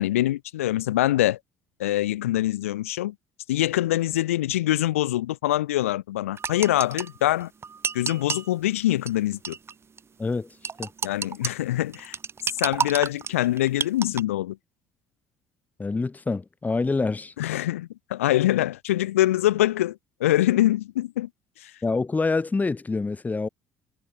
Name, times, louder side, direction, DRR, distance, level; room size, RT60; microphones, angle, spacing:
voice 1, 0.0-1.4 1.8-3.1 3.5-7.5 7.9-9.6 11.0-12.2 12.5-14.6 17.4-21.3 21.6-21.7, left 14 dB, 85° left, 2.4 m, -24 dB
sound 1, 6.4-8.5 9.1-9.2 9.4-9.7 10.0-10.1 10.6-11.5 11.9-14.2, right 6 dB, 35° right, 2.1 m, -30 dB
voice 2, 10.2-10.5 10.8-10.9 15.8-17.3 21.8-23.5, left 3 dB, 20° left, 1.9 m, -26 dB
hypercardioid pair, 60°, 7 cm